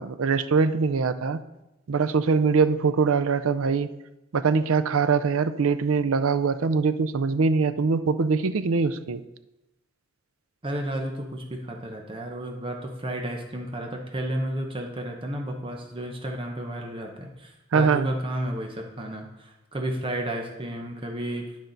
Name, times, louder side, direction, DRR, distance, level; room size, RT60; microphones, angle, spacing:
voice 1, 0.0-1.4 1.9-3.9 4.3-9.2 17.7-18.1, right 5 dB, 85° right, 11 dB, 0.5 m, -23 dB
voice 2, 10.6-21.5, right 1 dB, 25° right, 1 dB, 0.9 m, -32 dB
10.0 x 6.3 x 4.0 m, 0.96 s
head